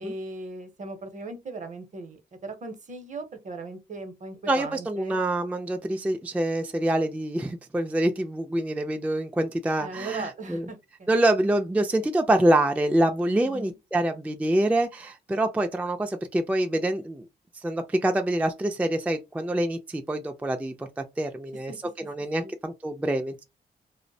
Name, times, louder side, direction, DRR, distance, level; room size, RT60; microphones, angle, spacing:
voice 1, 0.0-5.2 9.8-11.1 13.4-13.8 21.7-21.8 22.4-22.5, right 2 dB, 45° right, 0.7 m, -38 dB
voice 2, 4.5-10.7 11.1-17.3 17.5-21.7 22.0-23.4, right 1 dB, 10° right, 0.3 m, -26 dB
2.5 x 2.0 x 2.6 m
cardioid pair, 75°, 18 cm